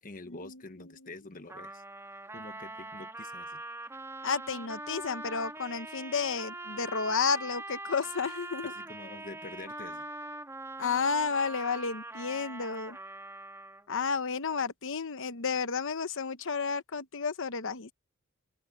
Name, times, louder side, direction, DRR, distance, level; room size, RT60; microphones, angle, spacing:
voice 1, 0.0-1.8 2.3-3.6 8.6-10.1, left 2 dB, 40° left, 1.2 m, -46 dB
Trumpet, 1.5-13.9, right 2 dB, 15° right, 3.1 m, -42 dB
voice 2, 4.2-8.7 10.8-13.0 13.9-17.9, left 5 dB, 65° left, 1.0 m, -31 dB
open air
head